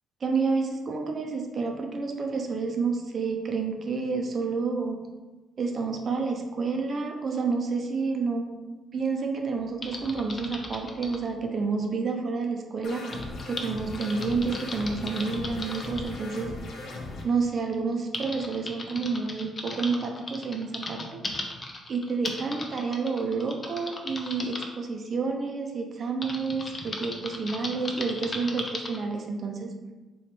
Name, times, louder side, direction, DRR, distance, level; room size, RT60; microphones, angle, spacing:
voice 1, 0.2-5.0 5.6-8.5 8.9-13.0 13.5-16.5 17.2-21.2 21.9-29.7, right 4 dB, 50° right, 3 dB, 0.7 m, -29 dB
Typing, 9.8-11.2 13.1-16.1 17.1-17.2 17.7-24.7 26.2-29.0, left 2 dB, 35° left, 0.6 m, -37 dB
sound 1, 12.8-17.2, left 2 dB, 65° left, 0.9 m, -38 dB
3.3 x 3.1 x 4.4 m, 1.2 s
cardioid pair, 90°, 0 cm